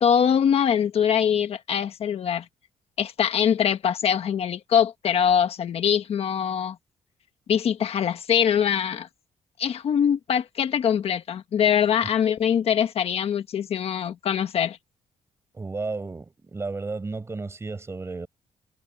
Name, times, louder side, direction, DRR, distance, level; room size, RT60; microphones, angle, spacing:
voice 1, 0.0-2.4 3.0-6.8 7.5-9.1 9.6-14.8, left 8 dB, 60° left, 1.3 m, -23 dB
voice 2, 15.5-18.3, right 3 dB, 20° right, 5.7 m, -33 dB
cardioid pair, 125°, 12 cm